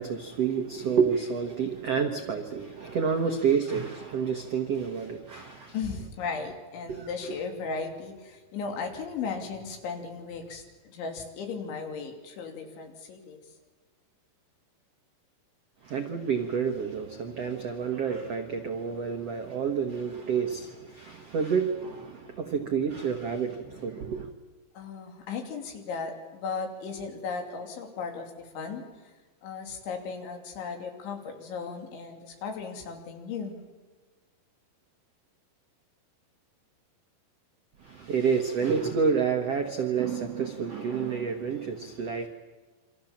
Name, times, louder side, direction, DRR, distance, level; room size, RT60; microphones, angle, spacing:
voice 1, 0.0-5.7 6.9-7.4 15.8-24.3 37.8-42.3, right 6 dB, 75° right, 4 dB, 1.4 m, -29 dB
voice 2, 5.7-13.4 24.8-28.9 29.4-33.6 38.1-38.2, left 5 dB, 80° left, 4 dB, 5.2 m, -36 dB
28.0 x 25.5 x 7.4 m, 1.3 s
omnidirectional pair, 5.3 m